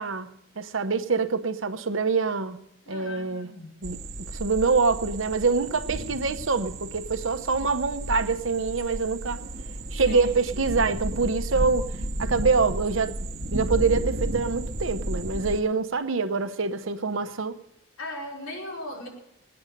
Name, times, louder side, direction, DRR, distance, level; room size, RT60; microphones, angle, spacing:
voice 1, 0.0-2.6 2.9-3.5 3.8-4.0 4.3-9.4 9.9-11.9 12.2-13.2 13.5-17.6, right 4 dB, 75° right, 9 dB, 0.9 m, -25 dB
voice 2, 2.9-3.8 10.0-10.4 18.0-19.1, left 1 dB, 90° left, -2 dB, 4.4 m, -38 dB
sound 1, 3.8-15.6, right 1 dB, 50° right, 1.2 m, -33 dB
19.5 x 9.7 x 6.6 m, 0.79 s
head